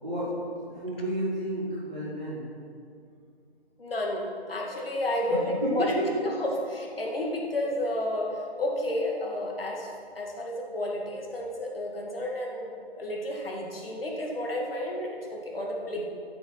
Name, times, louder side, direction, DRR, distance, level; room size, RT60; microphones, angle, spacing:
voice 1, 0.0-0.4 0.7-2.4 5.6-6.1 15.9-16.0, equal, 5° right, -14 dB, 0.8 m, -31 dB
voice 2, 3.8-5.9 6.4-9.9 10.2-12.7 13.0-16.0, left 1 dB, 60° left, -1 dB, 2.1 m, -31 dB
9.4 x 6.9 x 5.9 m, 2.3 s
figure-of-eight pair, 160°, 32 cm